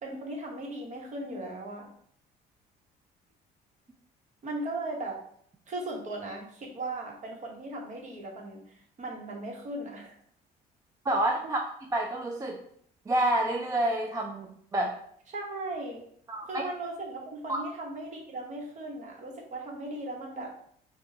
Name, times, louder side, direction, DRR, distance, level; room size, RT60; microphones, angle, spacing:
voice 1, 0.0-1.9 4.4-5.2 5.7-10.1 15.3-16.0 16.5-20.5, right 2 dB, 45° right, 0 dB, 1.1 m, -37 dB
voice 2, 11.1-11.6 11.9-12.6 13.1-15.0 16.3-16.6 17.5-17.6, right 1 dB, 20° right, 1 dB, 0.4 m, -28 dB
3.5 x 2.3 x 4.1 m, 0.63 s
cardioid pair, 110°, 17 cm